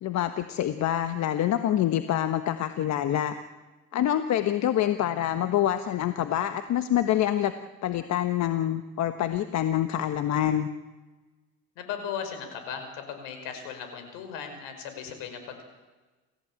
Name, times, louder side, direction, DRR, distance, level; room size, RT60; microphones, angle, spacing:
voice 1, 0.0-3.3 3.9-7.5 7.8-10.7, left 11 dB, 55° left, 9 dB, 1.4 m, -26 dB
voice 2, 11.8-15.6, left 7 dB, 75° left, 7 dB, 5.7 m, -37 dB
29.0 x 15.0 x 8.9 m, 1.2 s
supercardioid pair, 100°, 33 cm